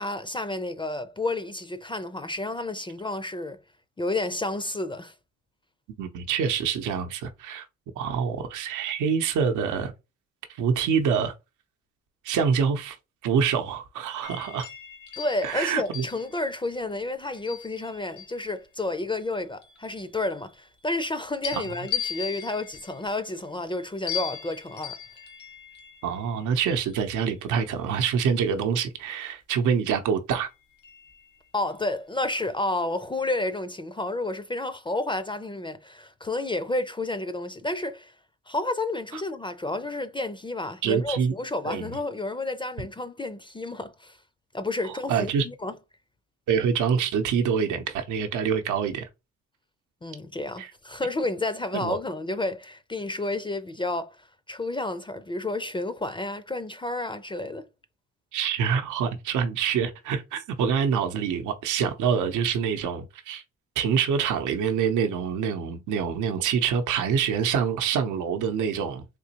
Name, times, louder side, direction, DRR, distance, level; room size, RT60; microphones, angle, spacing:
voice 1, 0.0-3.6 4.0-5.1 15.2-25.0 31.5-38.1 38.5-44.2 44.5-45.8 50.0-57.7, left 2 dB, 15° left, 0.4 m, -31 dB
voice 2, 6.0-7.7 8.0-9.9 10.6-11.3 12.2-13.0 13.2-14.7 15.4-16.1 21.5-21.6 26.0-30.5 39.1-39.2 40.8-41.3 41.7-41.9 44.8-45.5 46.5-49.1 50.6-50.7 51.7-52.0 58.3-63.4 63.8-69.0, right 7 dB, 80° right, 0.7 m, -26 dB
sound 1, 14.2-18.6 19.1-21.1 21.4-28.4 30.3-31.7 32.1-32.4, left 9 dB, 75° left, 1.2 m, -40 dB
3.7 x 2.9 x 2.8 m
cardioid pair, 90°, 30 cm